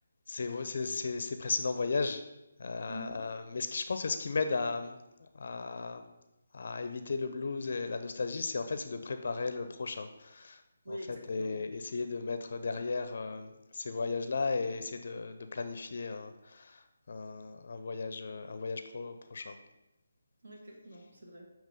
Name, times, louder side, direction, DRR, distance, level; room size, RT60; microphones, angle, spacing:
voice 1, 0.3-2.2 2.6-6.1 6.5-10.6 10.9-19.6, left 4 dB, 55° left, 8 dB, 0.4 m, -35 dB
voice 2, 2.9-3.2 10.8-11.5 20.4-21.5, equal, 70° right, 0 dB, 1.6 m, -45 dB
7.3 x 2.9 x 5.2 m, 0.96 s
figure-of-eight pair, 155°, 0 cm